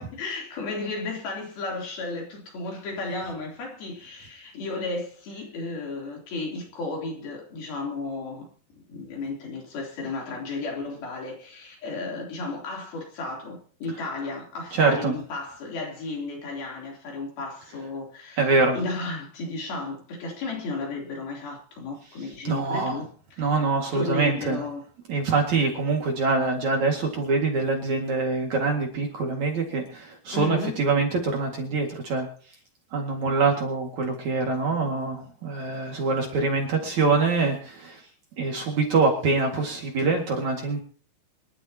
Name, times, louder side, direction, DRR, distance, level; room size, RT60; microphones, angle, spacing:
voice 1, 0.0-8.5 8.7-23.6 23.9-24.8 30.3-30.9, left 3 dB, 60° left, 5.1 m, -34 dB
voice 2, 14.7-15.1 18.4-18.8 22.4-23.0 23.4-24.6 25.1-32.3 32.9-38.0 38.4-40.8, right 3 dB, 50° right, 3.0 m, -24 dB
26.5 x 12.0 x 2.9 m
omnidirectional pair, 4.9 m